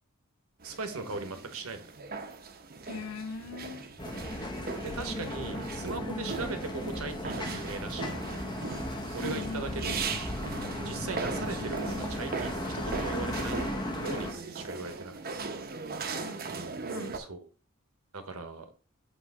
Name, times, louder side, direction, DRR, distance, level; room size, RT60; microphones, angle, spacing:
sound 1, 0.6-17.2, right 4 dB, 45° right, 0.8 m, -39 dB
voice 1, 0.6-1.9 4.2-4.3 4.8-8.5 9.1-10.0 10.8-15.4 17.1-17.5 18.1-18.7, right 3 dB, 75° right, 1.2 m, -39 dB
voice 2, 2.8-3.9 6.1-6.3 9.2-10.0 14.3-14.4 16.2-16.4 16.9-17.2, left 3 dB, 75° left, 0.5 m, -40 dB
sound 2, 4.0-14.3, left 1 dB, 20° left, 0.9 m, -36 dB
8.4 x 3.2 x 4.8 m
head